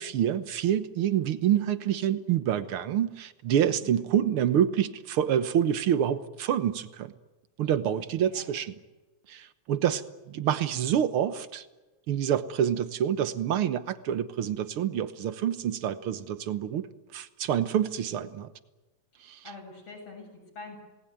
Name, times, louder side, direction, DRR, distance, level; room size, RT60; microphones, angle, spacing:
voice 1, 0.0-7.1 7.6-8.7 9.3-11.7 12.1-16.9 17.1-18.5 19.2-19.4, right 10 dB, 60° right, 12 dB, 1.5 m, -27 dB
voice 2, 3.7-4.1 8.2-8.6 19.2-20.8, left 3 dB, 50° left, 2 dB, 8.7 m, -46 dB
28.0 x 19.5 x 9.3 m, 1.1 s
omnidirectional pair, 3.5 m